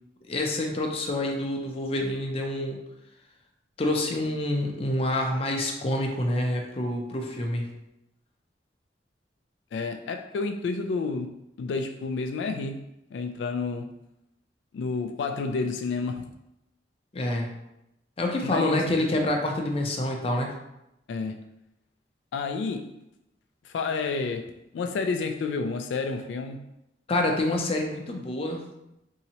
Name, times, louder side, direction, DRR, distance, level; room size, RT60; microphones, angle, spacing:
voice 1, 0.3-2.8 3.8-7.7 17.1-17.6 18.2-20.5 27.1-28.6, left 1 dB, 35° left, 0.5 m, -27 dB
voice 2, 9.7-12.8 13.1-13.9 14.7-16.3 18.4-18.8 21.1-21.4 22.3-22.9 23.6-26.6, left 4 dB, 90° left, 0.3 m, -30 dB
4.0 x 2.7 x 2.8 m
head